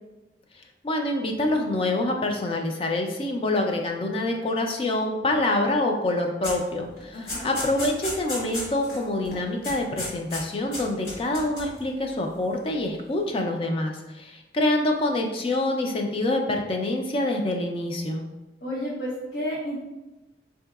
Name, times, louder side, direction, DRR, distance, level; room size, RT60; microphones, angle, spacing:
voice 1, 0.8-18.2, left 2 dB, 30° left, 2 dB, 0.3 m, -26 dB
sound 1, 6.4-6.7 7.0-9.0 9.3-9.4 9.6-10.4 10.7-11.8, left 1 dB, 55° left, 1.5 m, -33 dB
voice 2, 7.1-7.5 18.6-19.8, equal, 85° left, -7 dB, 0.8 m, -31 dB
3.8 x 2.7 x 2.3 m, 1.0 s
head